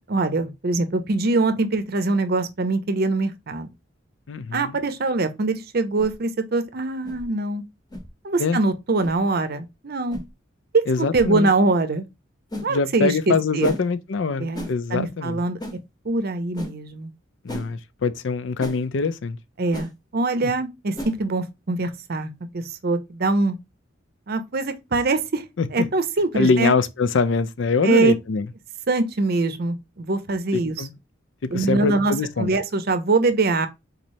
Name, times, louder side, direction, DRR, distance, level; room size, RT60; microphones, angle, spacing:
voice 1, 0.1-3.7 4.5-7.6 8.2-10.2 10.7-12.1 12.6-13.8 14.4-15.6 16.0-17.1 19.6-23.6 24.3-25.4 25.7-26.8 27.8-28.1 28.9-30.9 31.5-33.7, right 3 dB, 50° right, 0.6 m, -23 dB
voice 2, 4.3-4.8 8.4-8.6 10.9-11.5 12.7-15.4 17.4-19.4 20.4-20.5 25.6-25.9 26.3-28.5 30.5-30.9 31.5-32.5, left 4 dB, 70° left, 0.5 m, -24 dB
sound 1, 6.0-6.1 7.0-7.2 7.9-8.1 9.0-9.1 10.1-10.3 11.1-11.3 12.5-12.7 13.6-13.8 14.5-14.7 15.6-15.8 16.6-16.7 17.5-17.7 18.6-18.8 19.7-19.9 20.9-21.2, equal, 20° left, 1.0 m, -34 dB
4.0 x 3.1 x 2.6 m
head